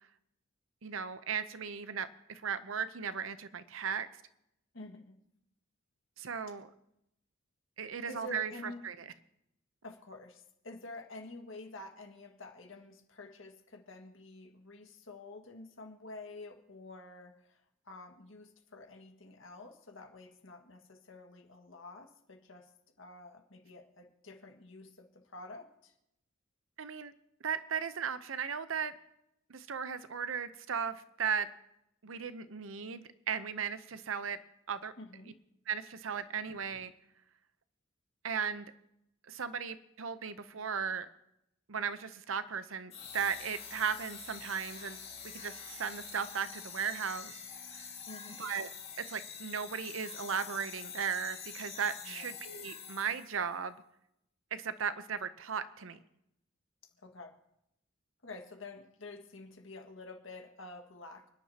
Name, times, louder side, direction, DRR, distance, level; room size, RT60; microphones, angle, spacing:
voice 1, 0.8-4.1 6.2-6.7 7.8-8.5 8.8-8.9 26.8-27.1 27.4-28.9 29.5-31.5 32.0-34.4 34.7-34.9 35.7-36.9 38.2-38.7 39.3-41.1 41.7-47.3 47.7-47.9 48.4-48.7 49.0-53.8 54.5-56.0, right 6 dB, 70° right, 13 dB, 0.7 m, -36 dB
voice 2, 4.7-5.2 6.5-6.6 8.1-8.9 9.8-22.7 23.0-25.9 35.0-35.4 48.1-48.4 52.0-52.3 57.0-57.4 58.2-61.3, left 2 dB, 65° left, 4 dB, 1.8 m, -49 dB
sound 1, 42.9-53.4, left 6 dB, 30° left, 2.3 m, -46 dB
29.5 x 10.5 x 2.9 m, 0.82 s
head